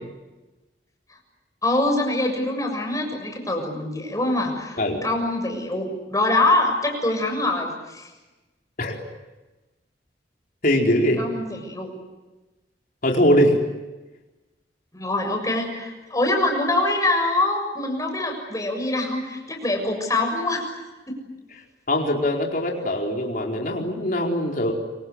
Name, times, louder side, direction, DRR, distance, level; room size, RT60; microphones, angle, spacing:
voice 1, 1.6-8.1 11.2-11.9 14.9-21.3, left 2 dB, 20° left, 3 dB, 6.9 m, -24 dB
voice 2, 10.6-11.2 13.0-13.6 21.9-24.7, equal, 50° left, 0 dB, 4.5 m, -21 dB
27.5 x 26.0 x 8.2 m, 1.1 s
head